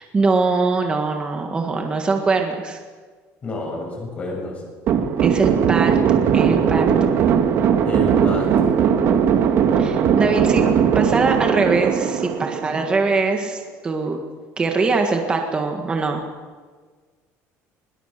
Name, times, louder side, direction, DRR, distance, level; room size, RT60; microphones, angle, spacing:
voice 1, 0.0-2.8 5.2-6.0 6.3-7.1 9.8-10.6 10.9-14.2 14.6-16.2, right 3 dB, 15° right, 3 dB, 1.7 m, -22 dB
voice 2, 3.4-4.6 7.8-8.7, left 2 dB, 25° left, 0 dB, 7.0 m, -29 dB
sound 1, 4.9-13.2, right 7 dB, 45° right, 1.8 m, -18 dB
21.0 x 20.0 x 6.7 m, 1.5 s
cardioid pair, 165°, 6 cm